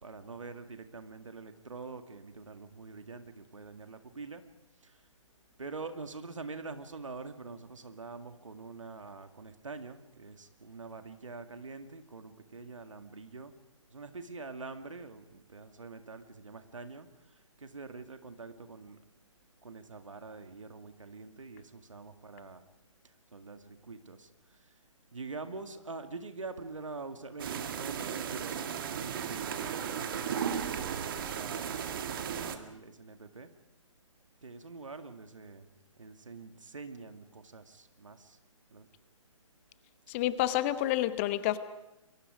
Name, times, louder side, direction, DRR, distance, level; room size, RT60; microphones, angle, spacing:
voice 1, 0.0-4.4 5.6-13.5 13.9-17.1 17.7-19.0 19.6-22.6 23.3-24.2 25.1-28.7 29.0-30.5 30.9-33.5 34.4-35.6 36.0-37.6 38.0-38.2 38.7-38.8, right 4 dB, 70° right, 8 dB, 2.1 m, -45 dB
sound 1, 27.4-32.6, right 8 dB, 40° right, 1.8 m, -35 dB
voice 2, 40.1-41.6, left 14 dB, 25° left, 13 dB, 1.0 m, -29 dB
28.5 x 22.5 x 5.1 m, 0.92 s
figure-of-eight pair, 130°, 17 cm